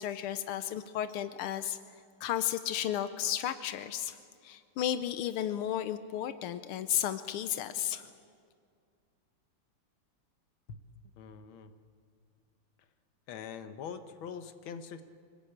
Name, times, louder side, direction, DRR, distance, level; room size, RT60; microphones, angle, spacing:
voice 1, 0.0-1.8 2.2-4.2 4.4-8.1, left 11 dB, 90° left, 11 dB, 1.7 m, -33 dB
voice 2, 11.2-11.7 13.3-15.0, left 7 dB, 70° left, 9 dB, 1.9 m, -43 dB
26.0 x 19.0 x 8.8 m, 2.2 s
omnidirectional pair, 2.4 m